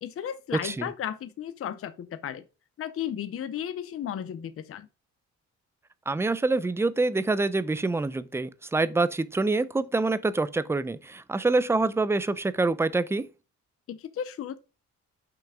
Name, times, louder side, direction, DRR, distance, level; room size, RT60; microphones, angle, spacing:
voice 1, 0.0-2.4 2.8-4.9 13.9-14.6, left 9 dB, 50° left, 0.6 m, -34 dB
voice 2, 6.1-13.3, right 3 dB, 10° right, 0.4 m, -26 dB
6.1 x 5.7 x 4.9 m
wide cardioid pair, 145°, 29 cm